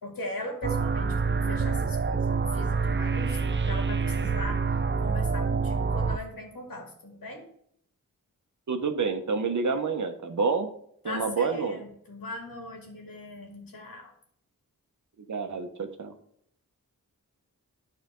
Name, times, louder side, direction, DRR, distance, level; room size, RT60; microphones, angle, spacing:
voice 1, 0.0-4.6 5.0-7.5 11.0-14.1, left 1 dB, 85° left, 1 dB, 2.3 m, -39 dB
sound 1, 0.6-6.2, right 5 dB, 35° right, 0.6 m, -27 dB
voice 2, 8.7-10.7 11.0-11.8 15.3-16.2, right 4 dB, 60° right, 7 dB, 1.2 m, -28 dB
12.5 x 4.4 x 3.8 m, 0.69 s
cardioid pair, 55°, 34 cm